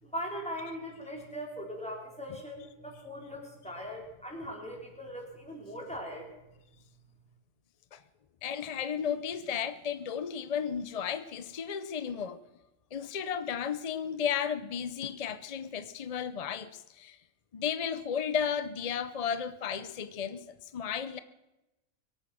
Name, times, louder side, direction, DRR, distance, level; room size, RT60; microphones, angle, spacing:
voice 1, 0.0-6.3, equal, 5° left, -1 dB, 3.9 m, -40 dB
voice 2, 8.4-12.4 12.9-17.2 17.5-21.2, left 7 dB, 50° left, 13 dB, 0.4 m, -34 dB
23.0 x 8.8 x 6.2 m, 0.97 s
omnidirectional pair, 1.4 m